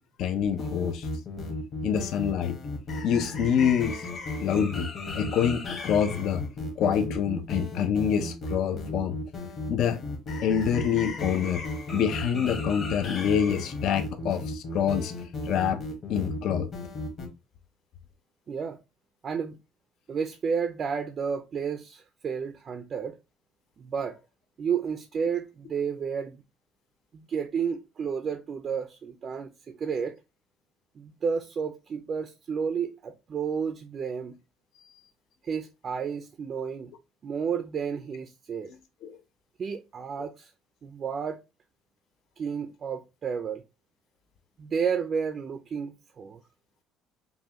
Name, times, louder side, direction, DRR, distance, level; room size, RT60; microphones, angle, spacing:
voice 1, 0.2-1.1 1.8-2.5 3.0-4.0 4.4-6.4 6.8-9.1 9.7-10.0 10.4-11.7 11.9-15.1 15.5-15.8 16.1-16.7 39.0-39.2, left 8 dB, 60° left, 0.6 m, -26 dB
sound 1, 0.6-17.3, left 2 dB, 35° left, 1.3 m, -35 dB
voice 2, 18.5-18.8 19.2-19.6 20.1-23.2 23.8-24.2 24.6-26.4 27.1-30.1 31.0-34.4 35.4-36.9 37.2-38.7 39.6-40.5 40.8-41.4 42.4-43.6 44.6-46.4, right 6 dB, 35° right, 0.5 m, -31 dB
5.4 x 2.3 x 2.9 m
cardioid pair, 140°, 0 cm